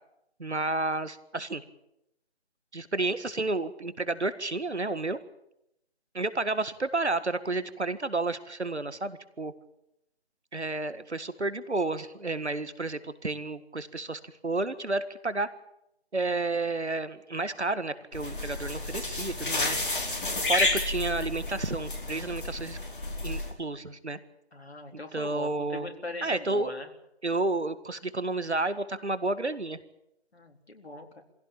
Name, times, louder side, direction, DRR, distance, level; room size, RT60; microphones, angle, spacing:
voice 1, 0.4-1.6 2.7-5.2 6.1-9.5 10.5-15.5 16.1-19.8 20.5-22.8 23.2-24.2 24.9-25.9 26.2-26.7 27.2-29.8, right 2 dB, 90° right, 13 dB, 1.9 m, -31 dB
sound 1, 18.1-23.5, left 2 dB, 50° left, 4.7 m, -31 dB
voice 2, 24.5-26.9 30.3-31.2, left 2 dB, 70° left, 3 dB, 3.9 m, -40 dB
23.0 x 16.5 x 8.8 m, 0.85 s
figure-of-eight pair, 160°, 33 cm